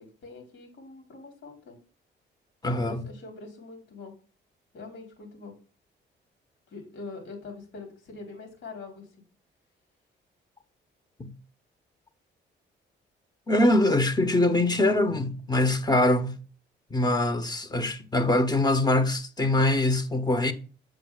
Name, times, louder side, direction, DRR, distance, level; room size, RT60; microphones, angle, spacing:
voice 1, 0.0-1.8 2.7-4.1 4.7-5.5 6.7-9.0, left 3 dB, 75° left, 3.7 m, -43 dB
voice 2, 2.6-3.1 11.2-11.3 13.5-16.4 16.9-20.5, left 1 dB, 20° left, 1.0 m, -23 dB
7.7 x 7.6 x 2.4 m
cardioid pair, 90°, 20 cm